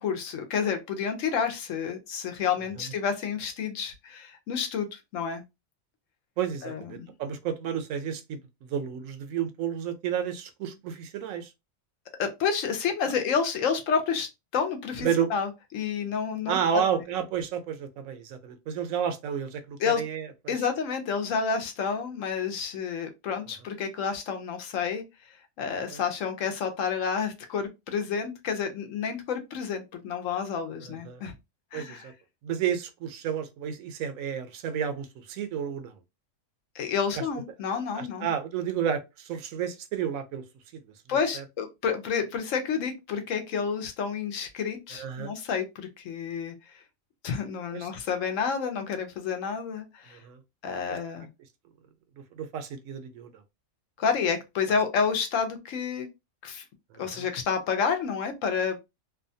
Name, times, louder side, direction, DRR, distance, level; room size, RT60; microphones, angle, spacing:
voice 1, 0.0-5.4 6.6-7.1 12.2-16.8 19.8-20.0 20.5-25.0 25.6-31.3 31.7-32.1 36.7-38.3 41.1-46.8 47.2-50.2 50.6-51.3 54.0-56.1 56.4-56.6 57.0-58.9, left 6 dB, 75° left, 1.0 m, -30 dB
voice 2, 6.4-11.5 15.0-15.3 16.5-20.5 25.9-26.0 30.9-31.2 31.7-32.1 32.4-36.0 37.2-37.3 37.9-40.4 41.3-41.4 44.9-45.3 47.7-47.9 50.1-50.4 50.9-51.0 52.3-53.4 56.9-57.3, right 8 dB, 80° right, 1.0 m, -31 dB
2.7 x 2.2 x 2.6 m
omnidirectional pair, 1.4 m